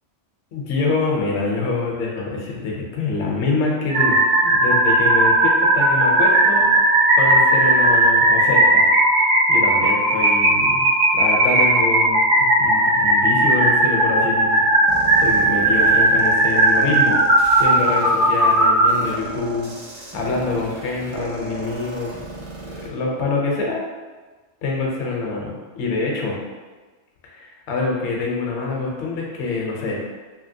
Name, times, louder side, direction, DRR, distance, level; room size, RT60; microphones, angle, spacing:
voice 1, 0.5-6.7 7.1-8.8 9.5-10.9 11.1-12.2 12.6-14.9 15.2-17.2 17.6-19.7 20.1-22.2 22.7-23.8 24.6-26.4 27.2-30.0, left 3 dB, 70° left, -2 dB, 0.9 m, -25 dB
sound 1, 3.9-18.9, right 1 dB, 70° right, 1.0 m, -16 dB
sound 2, 14.9-22.9, right 3 dB, 50° right, 0.4 m, -37 dB
2.8 x 2.7 x 2.6 m, 1.3 s
omnidirectional pair, 1.3 m